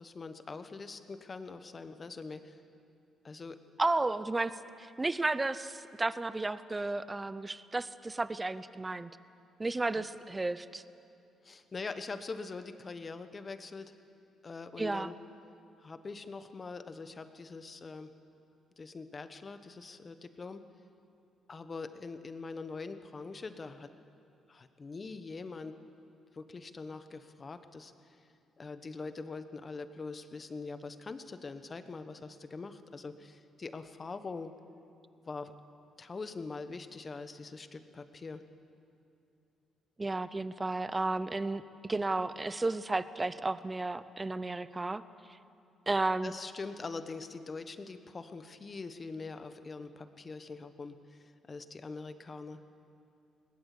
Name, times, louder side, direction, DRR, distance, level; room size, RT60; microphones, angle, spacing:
voice 1, 0.0-2.6 3.2-3.6 9.9-10.1 11.4-13.9 14.4-15.1 15.8-18.1 18.8-20.6 21.5-23.9 24.5-25.8 26.3-27.9 28.6-34.5 35.2-35.5 36.0-38.4 46.2-52.6, left 4 dB, 35° left, 10 dB, 1.2 m, -43 dB
voice 2, 3.8-9.1 9.6-10.8 14.8-15.1 40.0-45.0 45.9-46.3, right 2 dB, 20° right, 15 dB, 0.7 m, -33 dB
21.5 x 19.0 x 8.5 m, 2.6 s
cardioid pair, 90°, 0 cm